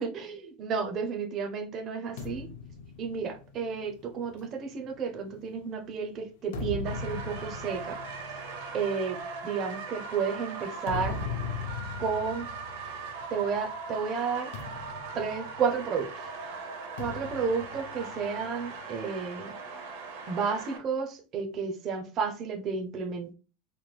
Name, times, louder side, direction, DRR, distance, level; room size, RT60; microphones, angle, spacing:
voice 1, 0.0-2.5 3.0-8.0 8.7-11.2 12.0-12.5 13.3-14.5 15.1-16.1 17.0-19.5 20.3-23.3, right 5 dB, 30° right, 0.4 m, -32 dB
sound 1, 2.2-5.8 6.3-13.7 14.0-14.2 14.5-16.1 17.0-18.7, left 4 dB, 80° left, 0.6 m, -40 dB
sound 2, 6.9-20.8, right 4 dB, 65° right, 0.7 m, -40 dB
3.0 x 2.2 x 3.2 m
supercardioid pair, 175°, 0 cm